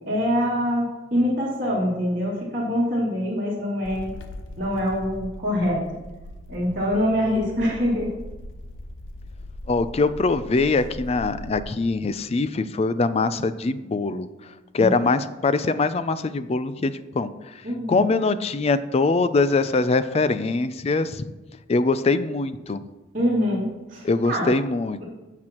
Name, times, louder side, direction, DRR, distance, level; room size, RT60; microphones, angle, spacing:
voice 1, 0.0-0.9 1.1-4.1 4.6-5.8 6.5-8.1 14.8-15.0 17.6-18.0 23.1-24.5, equal, 45° right, -9 dB, 2.6 m, -24 dB
sound 1, 3.8-11.6, left 1 dB, 80° left, 0.8 m, -40 dB
voice 2, 9.7-14.3 14.7-17.6 17.9-21.3 21.7-22.8 24.0-25.0, left 3 dB, 35° left, 13 dB, 0.4 m, -23 dB
16.0 x 5.9 x 3.0 m, 1.1 s
head